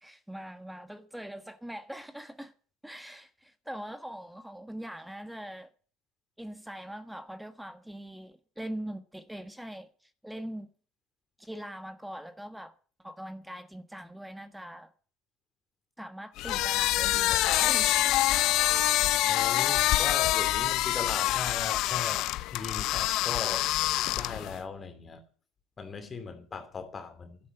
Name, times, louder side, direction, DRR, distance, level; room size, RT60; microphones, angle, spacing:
voice 1, 0.0-2.5 2.8-5.7 6.4-10.7 11.4-12.7 13.0-14.9 16.0-18.1 18.9-19.2, right 1 dB, 5° right, 1.4 m, -42 dB
sound 1, 16.4-24.6, left 16 dB, 65° left, 0.8 m, -26 dB
voice 2, 19.3-22.2 22.5-23.7 24.1-25.2 25.8-27.4, left 5 dB, 30° left, 2.8 m, -38 dB
12.0 x 10.5 x 7.9 m
supercardioid pair, 90°, 0 cm